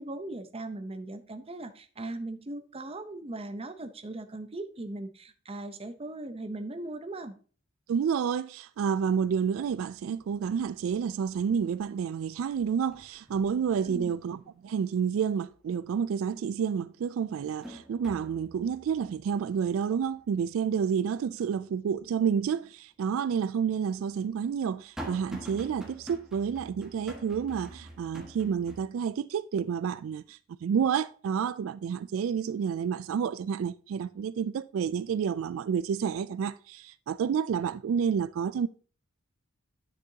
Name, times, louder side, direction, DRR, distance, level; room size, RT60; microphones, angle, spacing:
voice 1, 0.0-7.3 13.8-14.1, right 2 dB, 30° right, 0.7 m, -39 dB
voice 2, 7.9-38.7, right 7 dB, 85° right, 0.3 m, -29 dB
sound 1, 10.2-10.7 11.1-11.9 12.1-14.4 14.8-14.9 16.3-16.4 16.9-22.1 22.5-22.6 23.5-28.8, right 1 dB, 5° right, 1.6 m, -47 dB
9.9 x 6.6 x 2.8 m
head